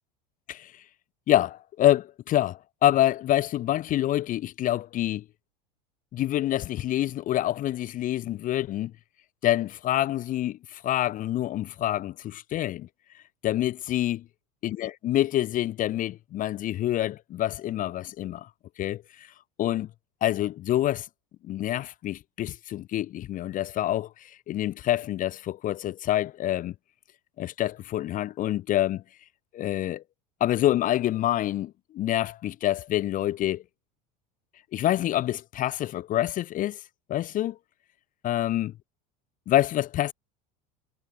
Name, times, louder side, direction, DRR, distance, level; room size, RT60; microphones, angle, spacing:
voice 1, 0.5-0.8 1.3-5.2 6.1-8.9 9.4-12.9 13.4-14.2 14.6-18.5 18.8-19.3 19.6-19.9 20.2-21.1 21.4-26.7 27.4-29.0 29.5-30.0 30.4-33.6 34.7-36.8 37.1-37.6 38.2-38.7 39.5-40.1, left 13 dB, 40° left, 0.8 m, -27 dB
supercardioid pair, 105°, 20 cm